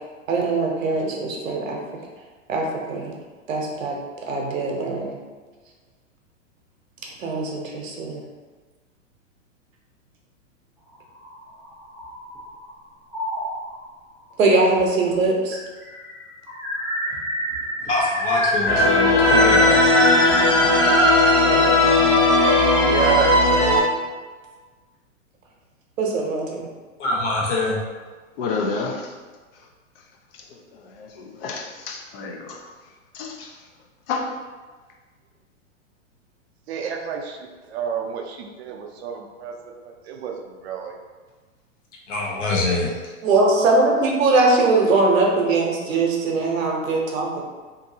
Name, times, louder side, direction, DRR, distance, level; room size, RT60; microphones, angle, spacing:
voice 1, 0.3-1.8 2.5-3.1 3.5-4.0 4.3-5.2 7.2-8.2 14.4-15.6 21.4-21.9 26.0-26.7 43.2-47.4, right 3 dB, 75° right, -1 dB, 0.8 m, -21 dB
sound 1, 11.1-12.6 13.1-13.8 14.8-14.9 15.1-15.2 15.5-21.3, equal, ahead, 0.4 m, -24 dB
voice 2, 17.8-19.8 27.0-27.8 42.1-42.9, left 2 dB, 65° left, -3 dB, 1.0 m, -24 dB
sound 2, 18.7-23.8, left 2 dB, 20° left, 1.2 m, -17 dB
voice 3, 22.8-23.7 36.7-39.7 40.0-41.0, right 7 dB, 55° right, 2 dB, 0.5 m, -29 dB
voice 4, 28.4-29.1 30.7-32.6 33.1-33.5 34.1-34.3, left 4 dB, 45° left, 0 dB, 0.5 m, -30 dB
2.7 x 2.6 x 2.6 m, 1.4 s
hypercardioid pair, 120°, 40 cm